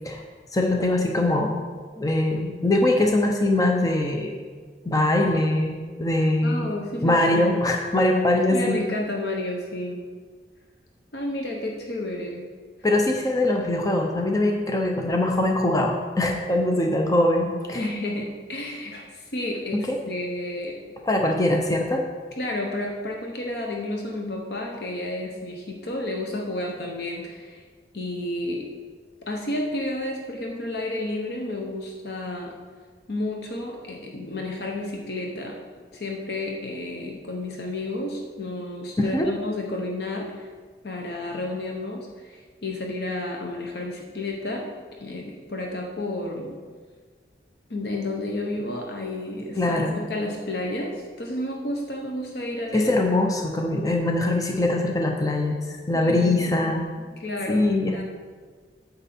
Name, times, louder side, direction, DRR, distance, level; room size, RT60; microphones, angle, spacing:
voice 1, 0.5-1.6 2.0-4.3 4.8-6.7 7.0-8.9 12.8-17.8 19.7-20.0 21.1-22.0 39.0-39.3 49.6-49.9 52.7-56.9 57.5-58.0, left 1 dB, 20° left, 1 dB, 0.6 m, -22 dB
voice 2, 6.4-7.5 8.5-10.1 11.1-12.5 17.7-20.8 22.4-27.6 27.9-28.7 29.3-32.5 33.1-35.6 35.9-40.5 40.8-44.7 45.0-46.6 47.7-52.9 55.9-56.3 57.2-58.1, left 1 dB, 60° left, 0 dB, 0.9 m, -31 dB
9.0 x 7.1 x 4.3 m, 1.5 s
head